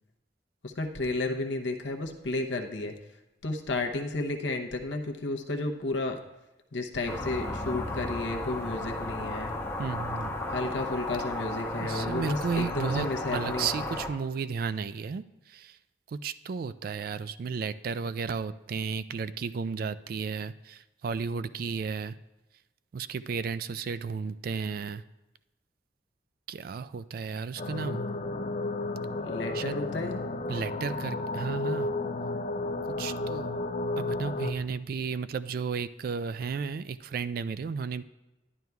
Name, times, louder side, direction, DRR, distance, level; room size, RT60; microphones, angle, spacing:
voice 1, 0.6-2.9 3.4-6.2 6.7-9.5 10.5-13.7 29.2-30.2, left 2 dB, 80° left, 3 dB, 0.8 m, -32 dB
sound 1, 7.1-14.1, left 1 dB, 15° left, 0.8 m, -34 dB
voice 2, 9.8-10.3 11.8-13.1 13.3-15.8 16.1-22.2 22.9-25.0 26.5-28.0 29.5-29.8 30.5-31.9 33.0-33.5 34.0-38.0, right 5 dB, 50° right, 14 dB, 0.3 m, -33 dB
sound 2, 27.6-34.5, left 2 dB, 40° left, 0.5 m, -32 dB
11.0 x 10.5 x 2.3 m, 1.0 s
head